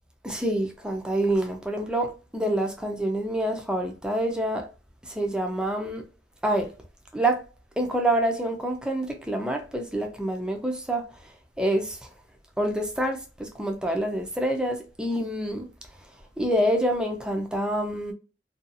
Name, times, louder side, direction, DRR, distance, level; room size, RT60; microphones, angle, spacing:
voice 1, 0.2-4.7 5.0-6.0 6.4-6.7 7.1-7.4 7.8-12.1 12.6-15.7 16.4-18.1, right 1 dB, 5° right, 0.4 m, -27 dB
2.6 x 2.3 x 2.6 m
head